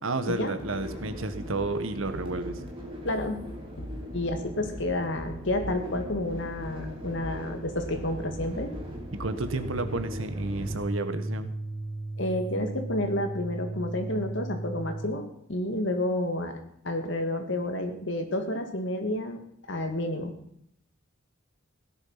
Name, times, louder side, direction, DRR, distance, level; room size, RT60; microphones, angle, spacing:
voice 1, 0.0-2.6 9.1-11.5, right 2 dB, 90° right, 10 dB, 1.5 m, -31 dB
sound 1, 0.6-10.8, equal, 25° right, 3.4 m, -39 dB
voice 2, 3.0-3.4 3.8-8.7 12.2-15.2 15.5-16.5 16.8-19.4 19.7-20.3, left 1 dB, 65° left, 5 dB, 2.3 m, -30 dB
sound 2, 9.5-15.2, right 2 dB, 30° left, 7.7 m, -36 dB
16.5 x 11.0 x 5.8 m, 0.72 s
head